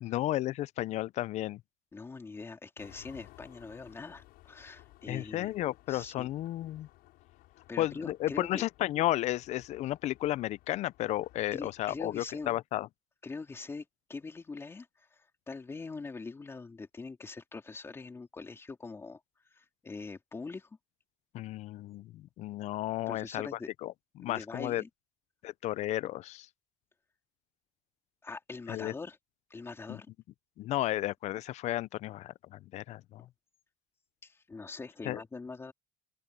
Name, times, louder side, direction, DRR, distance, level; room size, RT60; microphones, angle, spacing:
voice 1, 0.0-1.6 5.1-6.9 7.8-12.9 21.3-23.5 23.8-24.8 25.4-26.5 28.7-28.9 29.9-30.0 30.6-33.3 35.0-35.2, left 15 dB, 45° left, 0.4 m, -33 dB
voice 2, 1.9-5.5 5.9-6.3 7.7-8.6 11.5-12.5 13.2-19.2 19.5-20.7 23.1-23.7 24.2-24.9 28.2-29.2 29.5-30.1 33.1-33.3 34.2-35.7, left 4 dB, 15° left, 3.6 m, -43 dB
sound 1, 2.8-12.5, left 18 dB, 65° left, 7.0 m, -59 dB
open air
cardioid pair, 165°, 17 cm